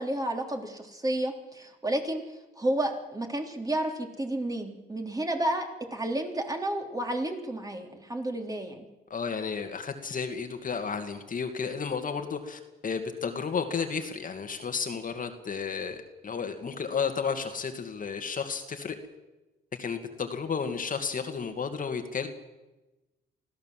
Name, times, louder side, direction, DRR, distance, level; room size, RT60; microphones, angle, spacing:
voice 1, 0.0-2.2 2.6-8.8, right 1 dB, 20° right, 3 dB, 3.6 m, -31 dB
voice 2, 9.1-19.0 19.8-22.3, left 6 dB, 45° left, 6 dB, 2.2 m, -32 dB
24.5 x 15.5 x 7.6 m, 1.1 s
cardioid pair, 90°, 20 cm